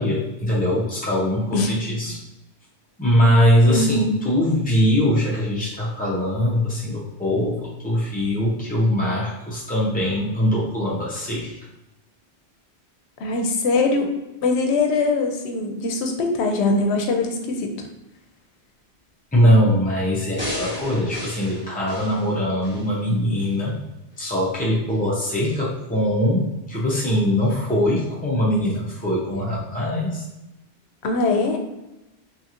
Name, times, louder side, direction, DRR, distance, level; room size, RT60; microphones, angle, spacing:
voice 1, 0.0-2.2 3.0-7.5 7.8-11.5 19.3-23.7 24.2-26.4 26.7-30.2, equal, 15° left, -6 dB, 0.3 m, -21 dB
voice 2, 3.7-4.1 13.2-14.1 14.4-17.8 31.0-31.6, left 3 dB, 80° left, 3 dB, 0.8 m, -22 dB
sound 1, 20.4-22.9 23.4-23.5, equal, 10° right, 1.2 m, -33 dB
3.1 x 2.8 x 2.4 m, 0.97 s
omnidirectional pair, 1.1 m